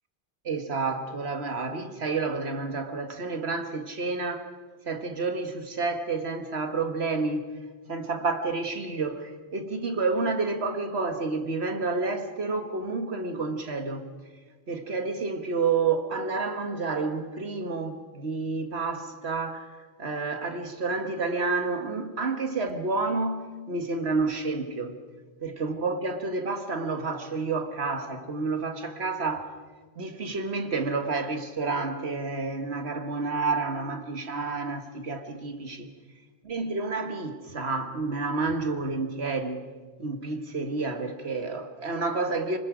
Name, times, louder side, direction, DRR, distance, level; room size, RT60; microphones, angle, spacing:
voice 1, 0.4-4.5 4.9-7.5 7.9-14.1 14.7-19.7 20.0-25.0 25.4-29.5 30.0-35.9 36.4-39.6 40.0-42.6, right 3 dB, 80° right, 1.9 m, -29 dB
29.5 x 20.0 x 5.1 m
omnidirectional pair, 1.1 m